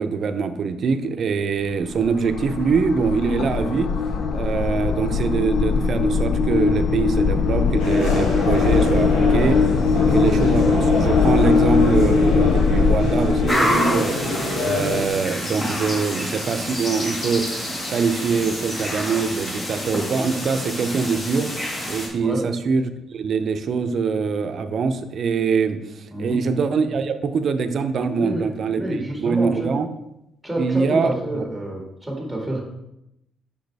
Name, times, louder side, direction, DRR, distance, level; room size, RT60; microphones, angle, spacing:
voice 1, 0.0-3.9 4.3-9.6 10.0-14.2 14.6-17.4 17.9-21.5 21.9-22.8 23.1-28.8 29.2-29.9 30.6-31.4, right 5 dB, 55° right, 8 dB, 0.6 m, -23 dB
sound 1, 1.6-13.5, left 5 dB, 75° left, 0.5 m, -20 dB
sound 2, 7.8-15.1, left 2 dB, 90° left, 1.5 m, -25 dB
sound 3, 13.5-22.1, left 1 dB, 35° left, 2.2 m, -28 dB
voice 2, 26.1-26.4 28.1-29.7 30.4-32.6, right 1 dB, 5° left, -1 dB, 1.9 m, -28 dB
6.5 x 5.4 x 3.4 m, 0.86 s
cardioid pair, 90°, 0 cm